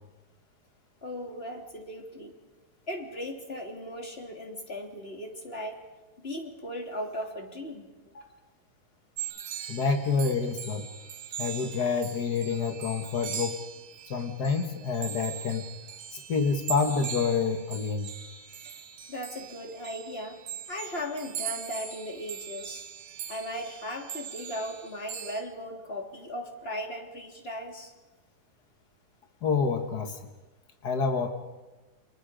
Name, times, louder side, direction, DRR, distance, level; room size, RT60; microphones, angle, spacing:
voice 1, 1.0-2.3 2.9-5.8 6.2-7.9 8.1-8.4 19.1-20.4 20.7-22.8 23.3-27.9, equal, 15° left, 2 dB, 3.2 m, -37 dB
sound 1, 9.2-25.4, right 8 dB, 75° right, 3.5 m, -41 dB
voice 2, 9.7-10.9 11.4-13.6 14.1-15.7 16.1-18.1 29.4-30.2 30.8-31.3, left 5 dB, 75° left, 5 dB, 0.9 m, -28 dB
30.0 x 28.5 x 5.2 m, 1.2 s
omnidirectional pair, 4.2 m